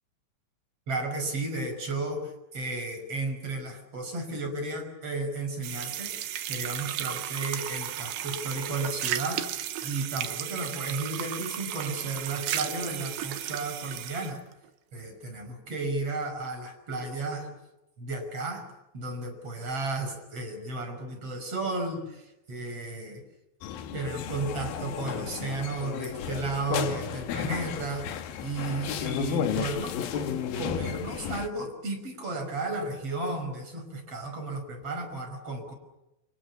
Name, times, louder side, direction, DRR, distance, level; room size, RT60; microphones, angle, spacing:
voice 1, 0.9-14.4 14.9-17.5 18.0-18.7 18.9-23.2 23.9-28.1 28.4-35.7, right 2 dB, 30° right, 5 dB, 6.1 m, -34 dB
sound 1, 5.6-14.4, right 11 dB, 70° right, 2.5 m, -34 dB
sound 2, 23.6-31.5, left 9 dB, 65° left, 2.5 m, -33 dB
29.0 x 27.0 x 6.9 m, 0.93 s
omnidirectional pair, 5.6 m